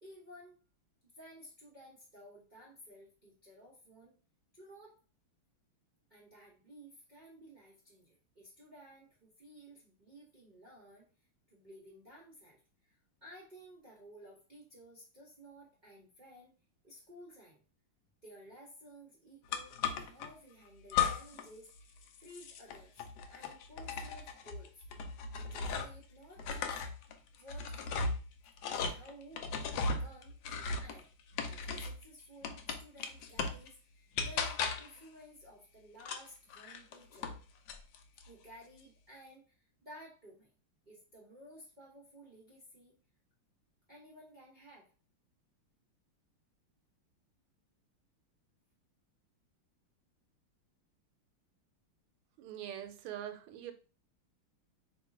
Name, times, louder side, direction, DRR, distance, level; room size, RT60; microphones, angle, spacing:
voice 1, 0.0-0.6 1.1-4.2 4.5-5.0 6.1-11.1 11.5-16.5 16.8-17.6 18.2-24.8 25.3-26.8 27.4-28.2 28.7-31.1 31.4-37.3 38.3-40.5 40.9-43.0 43.9-44.9, equal, 30° right, -5 dB, 0.9 m, -55 dB
sound 1, 19.5-20.3 20.9-21.5 21.8-26.0 26.4-32.0 32.4-33.7 34.2-35.0 36.0-37.4 37.7-38.3, left 5 dB, 80° left, 0.9 m, -37 dB
voice 2, 52.4-53.7, right 10 dB, 85° right, 8 dB, 1.5 m, -43 dB
3.2 x 2.9 x 4.5 m, 0.35 s
omnidirectional pair, 2.3 m